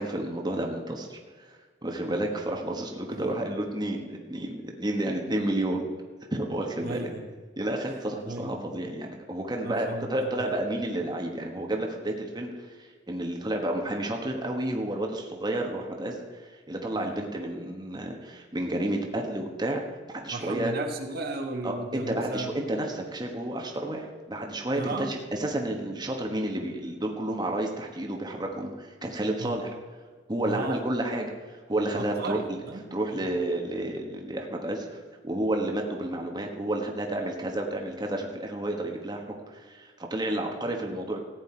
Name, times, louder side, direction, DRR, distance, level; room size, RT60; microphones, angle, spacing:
voice 1, 0.0-1.5 1.8-5.9 6.3-7.1 7.6-16.2 16.7-19.8 20.1-20.7 21.6-29.7 30.3-31.3 31.7-32.6 32.9-41.2, right 1 dB, 25° right, 1 dB, 1.3 m, -31 dB
voice 2, 6.8-7.3 8.3-8.7 9.6-10.5 16.9-17.2 20.3-22.5 24.7-25.1 29.4-29.5 30.4-30.8 31.9-33.4, right 2 dB, 55° right, 2 dB, 1.3 m, -35 dB
15.0 x 9.5 x 4.5 m, 1.5 s
head